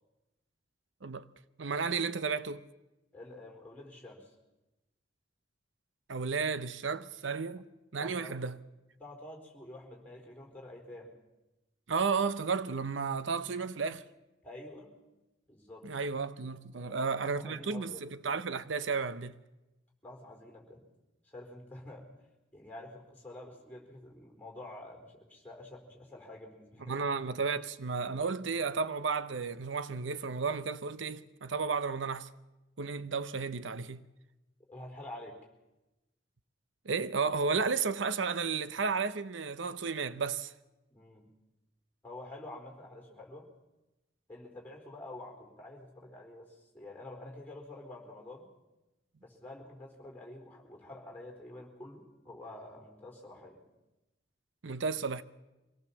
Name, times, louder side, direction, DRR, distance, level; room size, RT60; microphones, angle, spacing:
voice 1, 1.6-2.6 6.1-7.6 7.9-8.6 11.9-14.0 15.8-19.4 26.8-32.3 32.8-34.0 36.8-40.5 54.6-55.2, right 5 dB, 85° right, 0.7 m, -33 dB
voice 2, 3.1-4.3 8.0-8.4 9.0-11.1 14.4-14.9 15.5-15.9 16.7-18.0 20.0-20.8 21.2-22.1 22.5-26.9 34.7-35.4 40.9-41.3 42.0-43.5 44.3-48.5 49.2-53.6, left 1 dB, 10° left, 4.2 m, -48 dB
25.0 x 18.0 x 7.2 m
head